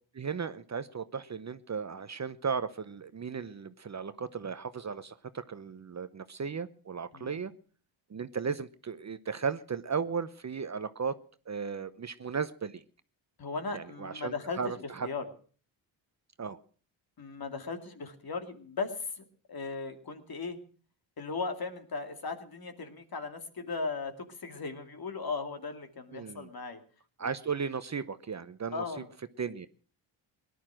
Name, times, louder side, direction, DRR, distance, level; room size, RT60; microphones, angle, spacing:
voice 1, 0.1-7.5 8.1-11.2 11.5-12.8 13.7-15.1 16.4-16.6 26.1-26.5 27.2-29.0 29.4-29.7, right 6 dB, 35° right, 13 dB, 0.8 m, -36 dB
voice 2, 7.1-7.5 13.4-14.8 15.0-15.2 17.2-20.6 21.2-26.8 27.2-27.3 28.7-29.1, left 4 dB, 45° left, 7 dB, 2.5 m, -37 dB
18.0 x 11.0 x 6.2 m, 0.44 s
cardioid pair, 75°, 49 cm